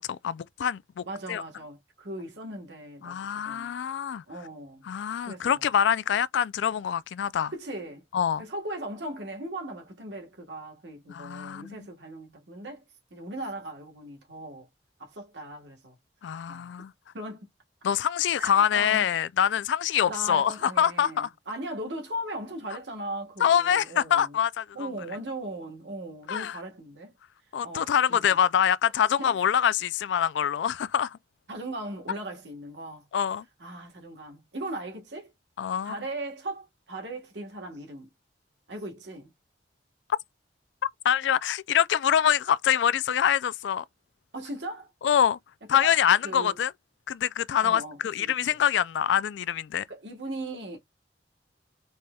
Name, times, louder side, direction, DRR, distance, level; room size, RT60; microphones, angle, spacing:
voice 1, 0.0-1.4 3.0-4.2 4.9-7.5 8.1-8.4 11.1-11.9 16.2-16.9 17.8-21.3 23.4-24.9 26.3-26.6 27.5-31.2 33.1-33.4 35.6-35.9 40.8-43.8 45.0-45.4 45.7-46.7 47.1-49.8, left 9 dB, 75° left, 0.3 m, -25 dB
voice 2, 1.0-3.7 4.3-4.9 5.2-5.7 7.5-8.0 8.4-12.8 13.1-14.7 15.0-16.0 16.5-16.7 17.1-17.5 18.4-19.1 20.1-24.4 24.7-27.1 27.6-28.3 29.2-29.5 31.5-33.1 33.6-35.3 35.8-38.1 38.7-39.3 44.3-44.9 45.7-46.5 47.6-48.6 49.9-50.8, right 1 dB, 75° right, 1.3 m, -38 dB
4.2 x 3.2 x 2.3 m
head